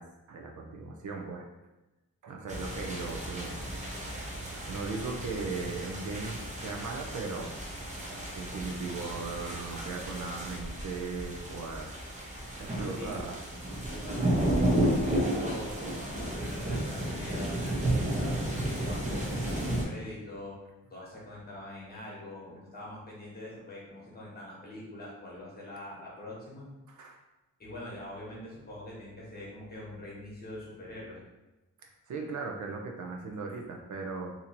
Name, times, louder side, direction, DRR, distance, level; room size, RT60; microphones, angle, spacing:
voice 1, 0.0-1.5 2.2-3.7 4.6-7.5 8.0-11.9 12.6-13.4 26.9-27.2 31.8-34.4, right 4 dB, 60° right, 1 dB, 0.5 m, -38 dB
sound 1, 2.5-19.8, right 1 dB, 20° right, 0.7 m, -33 dB
voice 2, 13.0-13.3 13.9-18.4 18.8-20.6 20.9-26.6 27.6-31.2, left 1 dB, 30° left, -5 dB, 1.1 m, -44 dB
2.8 x 2.6 x 4.2 m, 1.0 s
wide cardioid pair, 160°, 33 cm